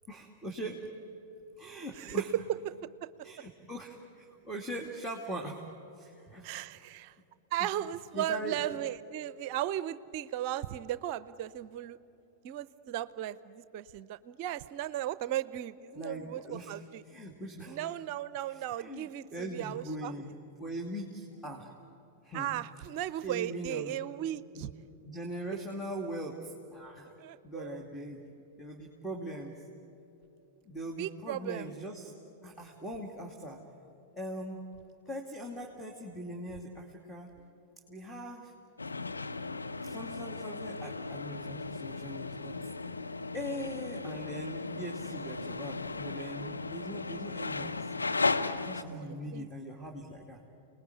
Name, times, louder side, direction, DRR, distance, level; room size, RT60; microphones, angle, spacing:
voice 1, 0.1-0.9 1.6-2.5 3.2-5.6 5.9-6.5 6.7-6.9 7.6-7.8 8.1-8.7 15.9-18.0 18.5-21.7 22.2-22.9 23.2-24.0 24.5-24.7 25.0-27.1 27.4-28.2 28.6-29.7 30.7-32.1 32.4-33.6 34.1-34.7 35.1-37.3 37.9-38.5 39.8-42.6 43.3-47.9 48.5-50.4, right 1 dB, 5° left, 1 dB, 2.7 m, -41 dB
voice 2, 1.9-3.4 6.4-7.1 7.5-12.0 12.4-17.0 17.7-20.1 22.3-24.7 27.2-27.8 31.0-31.7 48.9-49.5, right 12 dB, 50° right, 17 dB, 0.6 m, -36 dB
sound 1, 38.8-48.8, left 3 dB, 90° left, 0.9 m, -36 dB
29.0 x 20.0 x 9.4 m, 3.0 s
figure-of-eight pair, 100°, 0 cm